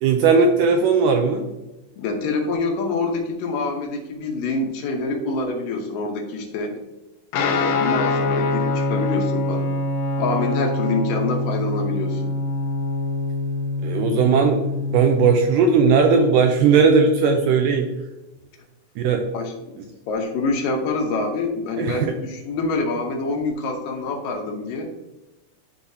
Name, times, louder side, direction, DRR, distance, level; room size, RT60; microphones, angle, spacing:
voice 1, 0.0-1.5 13.8-14.6 14.9-17.9 19.0-19.3 21.8-22.0, right 5 dB, 85° right, 4 dB, 2.0 m, -17 dB
voice 2, 2.0-6.8 7.3-9.7 10.2-12.4 19.3-19.8 20.1-24.9, left 3 dB, 75° left, 3 dB, 2.4 m, -26 dB
Guitar, 7.3-15.4, left 2 dB, 90° left, 2.8 m, -24 dB
11.5 x 4.0 x 2.7 m, 0.99 s
omnidirectional pair, 4.3 m